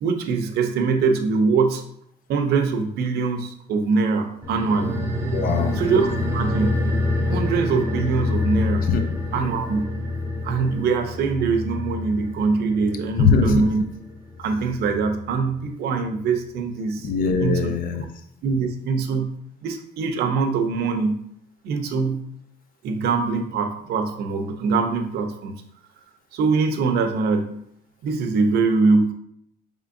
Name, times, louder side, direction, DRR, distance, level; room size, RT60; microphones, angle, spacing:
voice 1, 0.0-1.8 2.3-5.0 5.8-6.9 7.3-8.9 9.3-10.0 10.4-13.8 14.4-17.1 17.4-17.7 18.4-19.3 19.6-21.2 21.6-22.2 22.8-25.6 26.3-27.6 28.0-29.1, right 4 dB, 70° right, 6 dB, 0.7 m, -23 dB
sound 1, 4.4-15.3 15.6-15.7, left 2 dB, 15° right, 0.9 m, -27 dB
voice 2, 5.3-5.7 8.9-9.1 9.3-9.4 13.2-13.6 17.0-18.0, left 5 dB, 55° left, 6 dB, 0.7 m, -21 dB
5.0 x 3.6 x 2.6 m, 0.68 s
cardioid pair, 110°, 17 cm